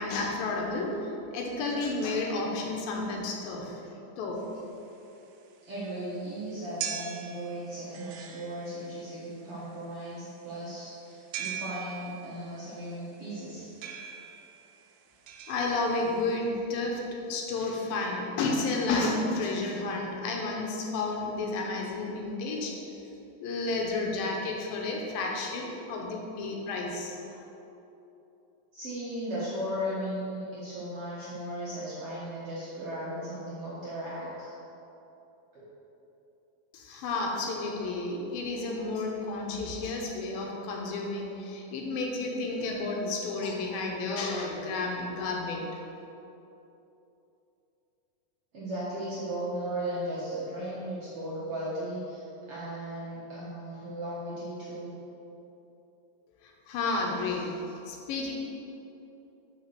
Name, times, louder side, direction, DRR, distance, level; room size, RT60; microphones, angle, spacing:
voice 1, 0.0-3.8 4.2-4.4 15.5-22.8 23.4-27.4 36.7-45.7 56.4-57.5 57.9-58.3, left 3 dB, 75° left, 0 dB, 2.5 m, -31 dB
sound 1, 4.4-16.4, right 8 dB, 90° right, 1.8 m, -42 dB
voice 2, 5.6-13.7 28.7-34.5 35.5-35.6 48.5-54.9, right 1 dB, 55° right, -9 dB, 1.6 m, -36 dB
5.7 x 5.6 x 6.7 m, 2.9 s
omnidirectional pair, 4.2 m